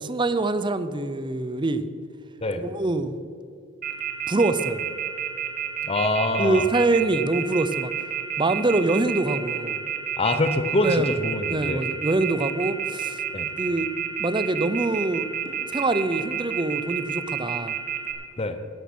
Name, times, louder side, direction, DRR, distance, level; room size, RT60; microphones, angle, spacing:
voice 1, 0.0-1.8 2.6-3.2 4.3-4.8 6.4-7.9 8.4-9.8 10.8-11.2 11.5-13.2 13.6-13.9 14.2-15.3 15.7-17.7, right 2 dB, 25° right, 12 dB, 0.6 m, -24 dB
Telephone, 3.8-18.1, right 10 dB, 45° right, 1.9 m, -29 dB
voice 2, 5.8-6.6 10.2-11.9 13.3-13.5 18.4-18.6, left 2 dB, 30° left, 9 dB, 0.7 m, -25 dB
12.5 x 11.0 x 6.0 m, 2.5 s
head